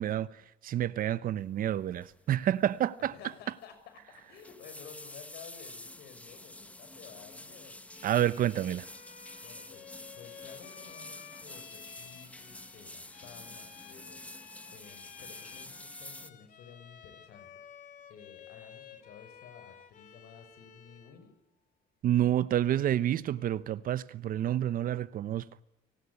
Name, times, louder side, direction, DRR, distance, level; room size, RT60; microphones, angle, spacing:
voice 1, 0.0-3.1 8.0-8.9 22.0-25.4, right 11 dB, 55° right, 1.0 m, -29 dB
sound 1, 2.0-2.2 2.5-2.8 3.1-3.2 4.1-16.3, left 1 dB, 10° left, 1.3 m, -48 dB
voice 2, 3.0-3.7 4.1-8.1 9.4-17.5 18.1-21.3, left 7 dB, 75° left, 6.3 m, -53 dB
Bowed string instrument, 7.9-21.3, left 8 dB, 50° left, 2.7 m, -53 dB
29.0 x 19.0 x 9.7 m
cardioid pair, 110°, 17 cm